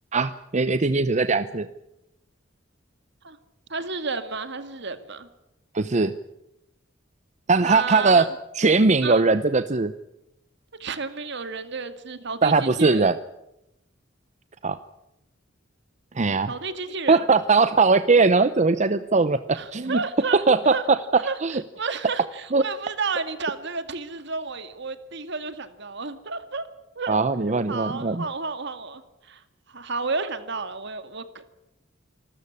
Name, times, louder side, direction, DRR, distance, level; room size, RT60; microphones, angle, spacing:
voice 1, 0.1-1.7 5.7-6.1 7.5-8.3 8.5-9.9 12.4-13.2 14.6-14.8 16.2-16.5 17.1-20.0 20.3-21.6 22.5-22.6 27.1-28.2, right 4 dB, 35° right, 13 dB, 0.7 m, -20 dB
voice 2, 3.7-5.3 7.6-8.3 9.0-9.2 10.8-13.1 16.5-17.2 19.5-20.8 21.2-21.4 21.8-26.7 27.0-27.2 27.5-29.4 29.7-31.4, right 4 dB, 65° right, 11 dB, 2.1 m, -31 dB
27.0 x 13.5 x 9.9 m, 0.87 s
head